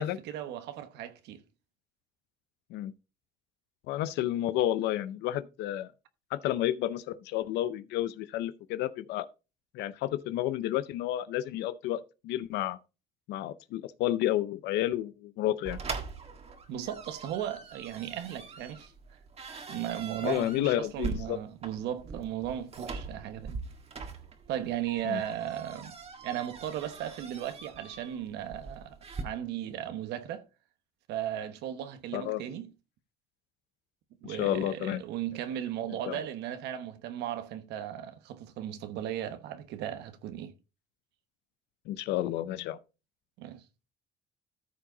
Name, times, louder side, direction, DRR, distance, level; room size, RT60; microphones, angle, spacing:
voice 1, 0.0-1.4 16.7-18.9 19.7-23.6 24.5-26.0 26.2-30.4 31.1-32.7 34.2-40.5 43.4-43.6, right 11 dB, 85° right, 1.1 m, -36 dB
voice 2, 3.9-5.9 6.3-9.3 9.7-12.8 13.3-15.8 20.2-21.4 25.1-25.2 32.1-32.4 34.3-35.0 36.1-36.2 41.9-42.8, left 13 dB, 85° left, 0.6 m, -31 dB
sound 1, 15.6-29.2, right 4 dB, 35° right, 1.7 m, -42 dB
14.0 x 4.8 x 3.9 m
cardioid pair, 110°, 17 cm